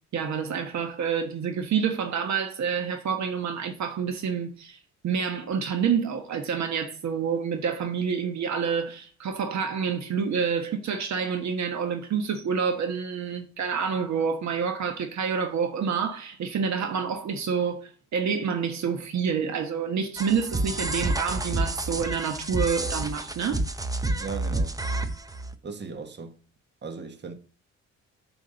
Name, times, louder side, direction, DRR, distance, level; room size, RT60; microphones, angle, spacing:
voice 1, 0.1-4.8 5.0-23.6, right 6 dB, 65° right, 1.3 m, -28 dB
sound 1, 20.2-25.5, right 2 dB, 10° right, 0.8 m, -29 dB
voice 2, 24.2-24.8 25.6-26.4 26.8-27.3, right 4 dB, 35° right, 1.5 m, -37 dB
7.6 x 4.7 x 7.0 m
cardioid pair, 90°, 30 cm